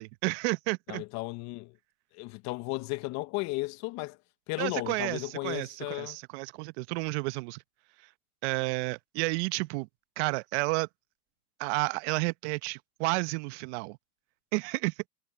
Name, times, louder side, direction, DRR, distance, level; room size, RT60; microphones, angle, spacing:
voice 1, 0.0-1.0 4.6-7.6 8.4-9.9 10.2-10.9 11.6-14.0 14.5-15.1, right 26 dB, 45° right, 1.2 m, -31 dB
voice 2, 0.9-1.7 2.1-4.2 4.5-6.2, left 23 dB, 35° left, 1.0 m, -34 dB
hypercardioid pair, 115°, 47 cm